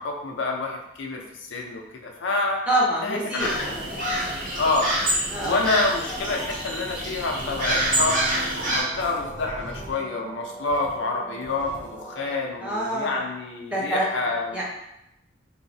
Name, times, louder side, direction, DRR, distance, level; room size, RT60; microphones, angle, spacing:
voice 1, 0.0-2.6 3.0-3.9 4.5-4.9 5.4-8.2 8.7-14.6, left 3 dB, 80° left, 1 dB, 0.5 m, -28 dB
voice 2, 2.7-3.5 5.3-5.6 12.6-13.2 13.7-14.1 14.5-14.6, right 1 dB, 5° right, -5 dB, 0.5 m, -25 dB
sound 1, 3.4-8.8, right 1 dB, 45° right, 0.7 m, -27 dB
sound 2, 7.3-12.3, right 1 dB, 80° right, 0.7 m, -39 dB
3.8 x 2.0 x 2.6 m, 0.86 s
head